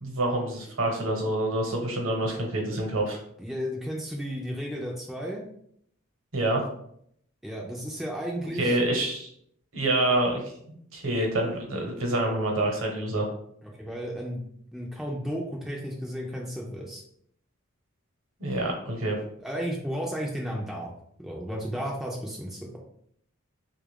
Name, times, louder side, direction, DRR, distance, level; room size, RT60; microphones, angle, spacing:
voice 1, 0.0-3.2 6.3-6.6 8.6-9.3 9.7-13.3 18.4-19.2, right 1 dB, 65° right, 1 dB, 1.0 m, -27 dB
voice 2, 3.4-5.4 7.4-8.8 13.6-14.5 14.7-17.0 19.4-20.9 21.2-22.8, equal, ahead, -3 dB, 0.4 m, -33 dB
3.5 x 2.4 x 3.4 m, 0.69 s
head